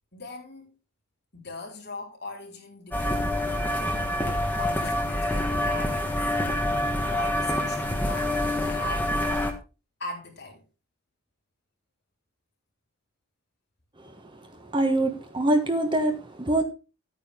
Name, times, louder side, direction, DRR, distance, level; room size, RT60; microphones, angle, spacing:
voice 1, 0.1-0.7 1.3-4.1 4.6-6.2 7.1-9.1 10.0-10.6, left 2 dB, 50° left, 4.1 m, -40 dB
sound 1, 2.9-9.5, left 1 dB, 10° left, 1.5 m, -26 dB
voice 2, 14.7-16.6, right 1 dB, 20° right, 1.2 m, -24 dB
11.5 x 9.1 x 3.6 m
head